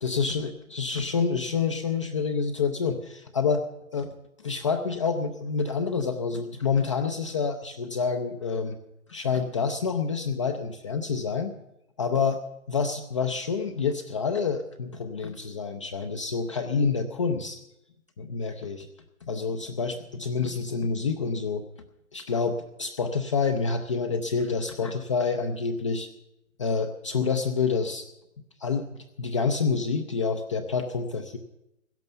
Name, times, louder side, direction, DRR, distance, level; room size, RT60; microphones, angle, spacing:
voice 1, 0.0-3.6 3.9-8.8 9.1-11.5 12.0-12.4 12.7-17.6 18.2-18.9 19.3-21.6 22.1-26.1 26.6-28.1 28.6-31.4, left 5 dB, 25° left, 6 dB, 0.6 m, -28 dB
16.5 x 11.0 x 6.9 m, 0.87 s
hypercardioid pair, 150°, 41 cm